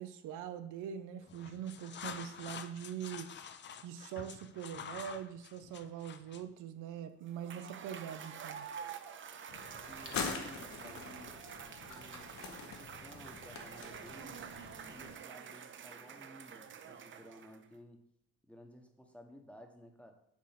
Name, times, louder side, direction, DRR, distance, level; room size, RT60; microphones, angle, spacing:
voice 1, 0.0-3.3 3.8-8.7, right 9 dB, 85° right, 10 dB, 0.6 m, -43 dB
sound 1, 1.2-6.5, left 7 dB, 40° left, 0.4 m, -48 dB
Cheering / Applause / Crowd, 7.3-17.7, right 7 dB, 40° right, 0.5 m, -48 dB
sound 2, 9.5-15.1, left 5 dB, 65° left, 0.9 m, -44 dB
voice 2, 9.7-11.4 11.9-14.4 14.9-18.1 18.4-20.1, equal, 5° left, 4 dB, 0.9 m, -56 dB
7.1 x 2.5 x 5.7 m, 0.73 s
cardioid pair, 90°, 30 cm